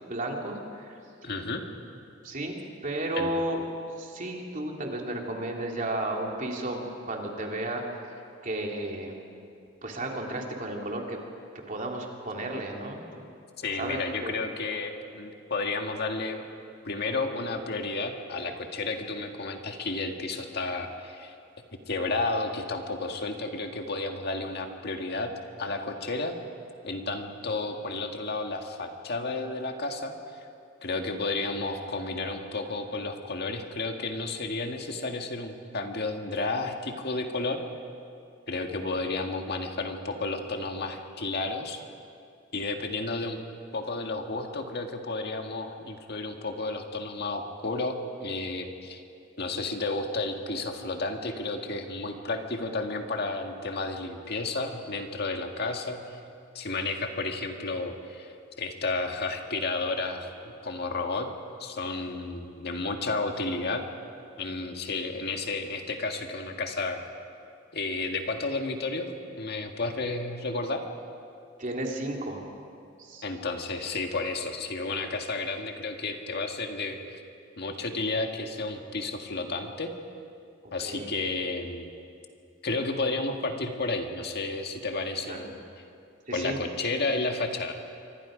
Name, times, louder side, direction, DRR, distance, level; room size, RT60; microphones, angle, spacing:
voice 1, 0.1-0.9 2.2-2.6 2.8-3.6 4.0-7.8 8.4-9.2 9.8-11.2 11.7-13.2 13.8-14.4 71.6-72.4 73.0-73.2 80.8-81.1 85.3-85.5 86.3-86.6, right 1 dB, 45° right, 0 dB, 2.9 m, -33 dB
voice 2, 1.2-1.6 3.2-3.3 13.6-16.5 16.8-21.4 21.7-25.3 25.6-26.4 26.8-30.5 30.8-37.6 38.5-41.8 42.5-43.4 43.7-49.0 49.4-56.2 56.5-60.3 60.6-61.3 61.6-63.8 64.4-67.0 67.7-70.8 73.2-77.2 77.6-79.9 80.7-81.9 82.6-85.6 86.3-87.7, left 3 dB, 55° left, 4 dB, 1.8 m, -32 dB
26.5 x 24.5 x 5.1 m, 2.5 s
head